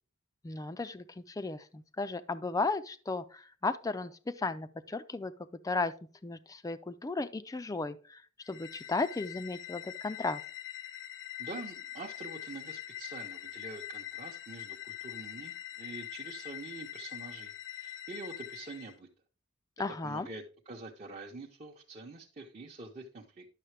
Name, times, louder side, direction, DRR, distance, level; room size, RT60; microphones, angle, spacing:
voice 1, 0.4-5.3 5.6-5.9 6.2-8.2 8.5-10.4 19.8-20.3, left 3 dB, 15° left, 0.4 m, -35 dB
sound 1, 8.4-18.9, left 12 dB, 65° left, 0.7 m, -44 dB
voice 2, 11.4-19.1 20.0-23.5, right 3 dB, 35° right, 0.8 m, -46 dB
9.9 x 6.5 x 3.3 m
head